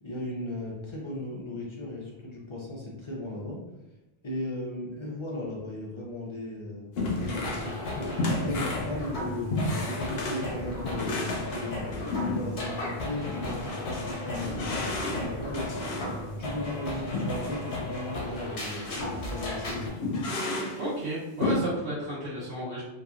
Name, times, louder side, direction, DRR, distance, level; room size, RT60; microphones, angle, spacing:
voice 1, 0.0-3.6 4.2-15.9 16.4-18.9 19.3-20.2, left 1 dB, 45° left, -4 dB, 0.4 m, -36 dB
sound 1, 7.0-12.7 13.2-16.2 17.1-17.6 18.0-18.1 18.8-19.1 19.4-19.5 20.0-20.8 21.4-21.6, left 2 dB, 70° left, 0.8 m, -32 dB
sound 2, 7.2-19.9, left 1 dB, 90° left, 1.0 m, -35 dB
voice 2, 20.8-22.8, right 1 dB, 65° right, -12 dB, 1.0 m, -32 dB
2.8 x 2.2 x 2.4 m, 1.0 s
omnidirectional pair, 1.1 m